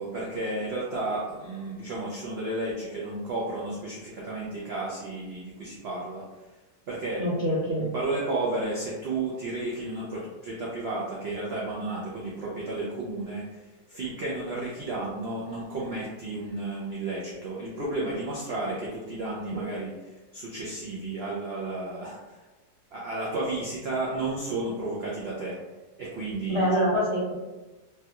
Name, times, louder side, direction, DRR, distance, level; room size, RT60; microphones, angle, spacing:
voice 1, 0.0-6.2 6.9-7.2 7.8-13.6 13.9-22.2 22.9-25.6 26.0-26.9, right 2 dB, 85° right, -5 dB, 0.5 m, -32 dB
voice 2, 7.2-7.9 26.5-27.3, equal, 45° right, -9 dB, 0.7 m, -25 dB
3.2 x 2.3 x 2.8 m, 1.2 s
omnidirectional pair, 1.8 m